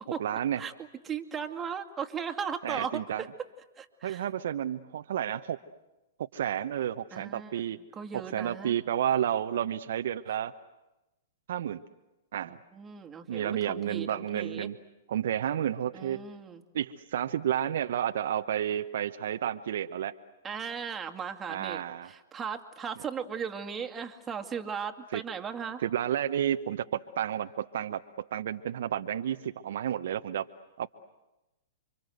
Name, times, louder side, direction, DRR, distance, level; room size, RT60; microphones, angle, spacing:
voice 1, 0.2-0.6 2.6-3.2 4.0-5.6 6.3-7.8 8.1-10.5 11.5-11.8 12.3-12.6 13.3-14.7 15.1-16.2 16.7-20.1 21.5-22.1 25.1-25.2 25.8-30.5 30.8-30.9, right 10 dB, 65° right, 8 dB, 0.9 m, -31 dB
voice 2, 1.0-3.3 3.8-4.3 7.1-7.6 7.9-8.8 12.7-14.7 15.9-16.6 20.4-25.8, right 7 dB, 15° right, 4 dB, 2.2 m, -37 dB
29.5 x 25.0 x 7.9 m, 0.98 s
hypercardioid pair, 115°, 0 cm